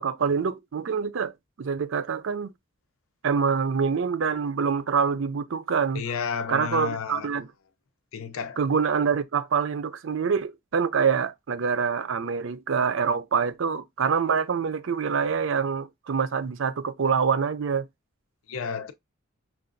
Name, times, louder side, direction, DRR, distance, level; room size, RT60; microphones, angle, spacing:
voice 1, 0.0-1.3 1.6-2.5 3.2-6.0 6.5-7.5 8.6-17.9, right 6 dB, 65° right, 0.4 m, -25 dB
voice 2, 5.9-7.3 8.1-8.6 18.5-18.9, left 6 dB, 85° left, 0.5 m, -31 dB
5.7 x 2.3 x 2.5 m
head